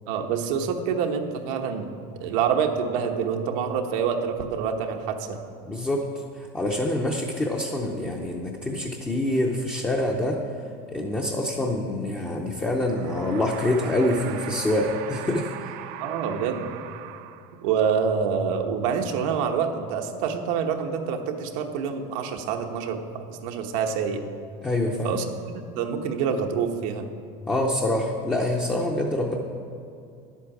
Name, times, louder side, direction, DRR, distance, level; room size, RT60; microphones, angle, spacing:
voice 1, 0.1-1.9 2.2-5.4 16.0-16.7 17.6-24.2 25.0-27.1, right 6 dB, 80° right, 4 dB, 1.1 m, -27 dB
voice 2, 5.7-6.1 6.4-10.4 10.9-15.7 24.6-25.2 27.5-29.3, left 1 dB, 10° left, 0 dB, 0.6 m, -26 dB
sound 1, 12.7-17.8, right 11 dB, 55° right, 0.6 m, -40 dB
11.0 x 8.3 x 6.0 m, 2.5 s
cardioid pair, 175°, 17 cm